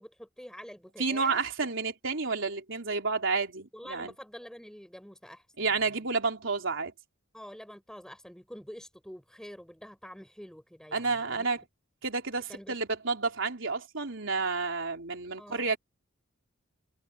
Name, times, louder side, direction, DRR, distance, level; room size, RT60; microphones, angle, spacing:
voice 1, 0.0-1.4 3.7-6.1 7.3-11.5 12.5-12.8 15.4-15.7, equal, 5° left, 7.6 m, -47 dB
voice 2, 1.0-4.1 5.6-6.9 10.9-11.6 12.0-15.8, right 4 dB, 65° right, 4.0 m, -30 dB
head